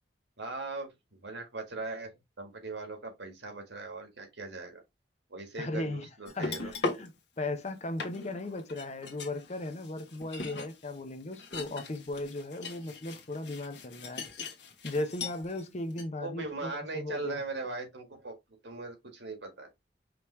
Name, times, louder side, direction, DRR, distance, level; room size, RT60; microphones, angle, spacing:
voice 1, 0.4-2.1 2.4-4.8 5.3-6.7 16.2-18.3 18.6-19.7, right 3 dB, 90° right, 1.7 m, -39 dB
voice 2, 5.6-6.1 6.3-14.3 14.8-17.4, left 2 dB, 40° left, 0.8 m, -37 dB
sound 1, 6.3-7.1 7.6-7.7 8.0-15.6 15.9-16.0, left 3 dB, 75° left, 1.4 m, -40 dB
5.2 x 3.1 x 3.1 m
head